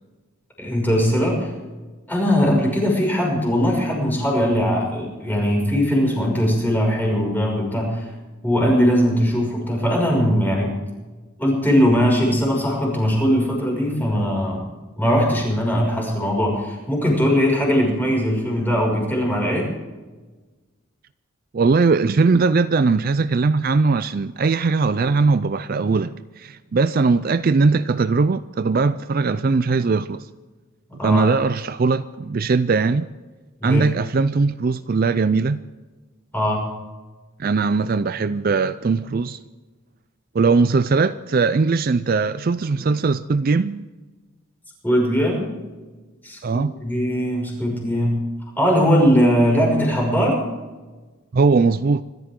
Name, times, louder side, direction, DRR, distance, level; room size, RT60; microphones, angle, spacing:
voice 1, 0.6-1.5 2.1-8.1 8.4-10.7 11.4-14.6 15.0-19.7 31.0-31.3 33.6-33.9 36.3-36.6 44.8-45.4 46.2-48.2 48.6-50.4, equal, 10° left, 5.9 m, -20 dB
voice 2, 21.5-30.3 31.0-33.1 33.6-35.6 37.4-39.4 40.3-43.9 46.4-46.7 51.3-52.0, right 4 dB, 45° right, 0.4 m, -20 dB
25.5 x 13.5 x 3.7 m
head